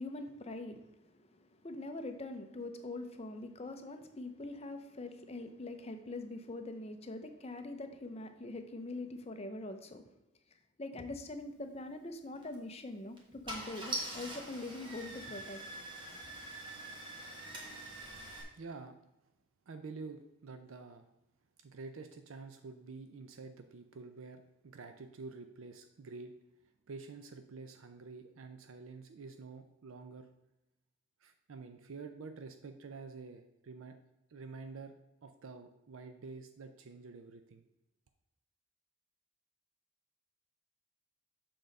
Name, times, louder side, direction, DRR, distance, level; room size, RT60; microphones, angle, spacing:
voice 1, 0.0-10.0 10.8-15.6, left 2 dB, 30° left, 7 dB, 0.6 m, -43 dB
Car / Engine starting, 12.4-12.6 13.2-13.3 13.5-18.4, right 1 dB, 20° right, 1.2 m, -43 dB
voice 2, 18.5-19.0 19.7-21.1 21.6-26.3 26.9-30.3 31.2-34.0 34.3-34.9 35.2-37.7, right 4 dB, 65° right, 8 dB, 0.5 m, -48 dB
6.8 x 3.8 x 5.3 m, 0.94 s
head